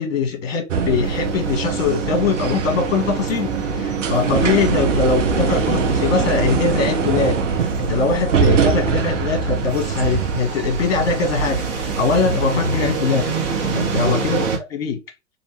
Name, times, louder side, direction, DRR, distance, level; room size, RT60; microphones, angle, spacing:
voice 1, 0.0-14.4 14.7-15.0, left 4 dB, 50° left, 1.1 m, -22 dB
sound 1, 0.7-10.4, right 6 dB, 65° right, 0.8 m, -22 dB
sound 2, 1.0-14.6, right 4 dB, 45° right, 1.2 m, -26 dB
2.8 x 2.6 x 3.1 m
figure-of-eight pair, 105°, 39 cm